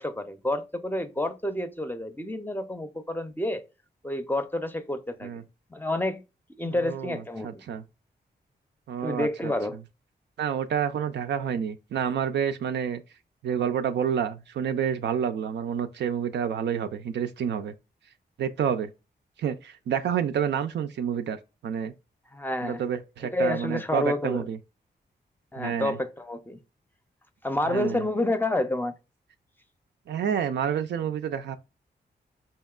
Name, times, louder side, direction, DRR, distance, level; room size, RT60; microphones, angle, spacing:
voice 1, 0.0-3.6 4.0-5.4 5.7-6.2 6.6-7.5 9.0-9.8 22.3-22.8 23.2-24.5 25.5-26.6 27.4-28.9, left 1 dB, 10° left, 0.5 m, -29 dB
voice 2, 6.7-7.8 8.9-9.5 10.4-13.0 13.4-17.7 18.4-18.9 19.4-21.9 22.6-24.6 25.6-26.0 27.6-28.0 30.1-31.6, right 8 dB, 75° right, 0.4 m, -29 dB
4.3 x 2.8 x 2.3 m
cardioid pair, 50°, 18 cm